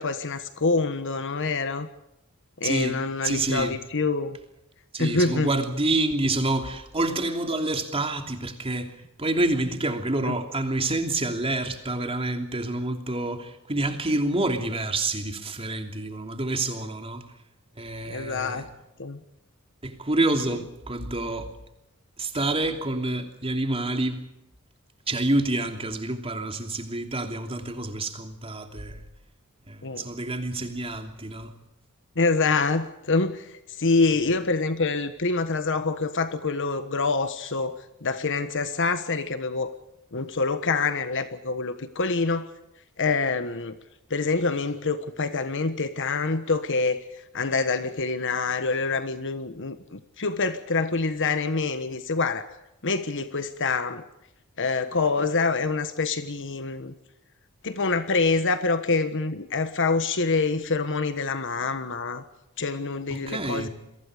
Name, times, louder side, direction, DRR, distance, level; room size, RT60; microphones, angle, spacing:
voice 1, 0.0-1.9 2.6-4.4 5.0-5.5 10.2-10.3 18.1-18.7 19.0-19.2 29.8-30.1 32.2-39.7 40.1-42.5 43.0-43.8 44.1-47.0 47.3-52.5 52.8-54.0 54.6-56.9 57.6-62.2 62.6-63.7, left 3 dB, 60° left, 1.3 m, -26 dB
voice 2, 2.6-3.8 4.9-8.9 9.2-17.2 17.8-18.7 19.8-21.5 22.2-24.2 25.1-29.0 29.7-31.5 34.1-34.3 63.1-63.7, right 2 dB, 25° right, 3.0 m, -28 dB
29.0 x 23.0 x 5.1 m
head